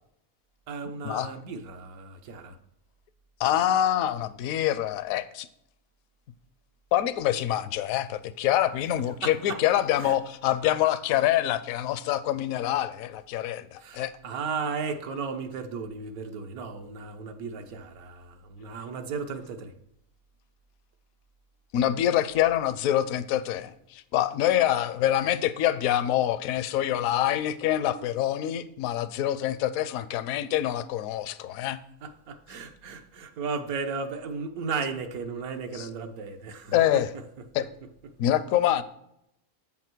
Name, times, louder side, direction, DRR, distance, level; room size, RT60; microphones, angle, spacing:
voice 1, 0.7-2.6 9.2-9.6 10.0-10.2 13.8-19.7 32.0-37.0, right 5 dB, 80° right, 1.4 m, -35 dB
voice 2, 3.4-5.5 6.9-14.1 21.7-31.8 35.7-35.9 36.7-37.1 37.5-37.7 38.2-38.8, left 12 dB, 75° left, 1.0 m, -26 dB
8.1 x 5.8 x 4.5 m
omnidirectional pair, 1.5 m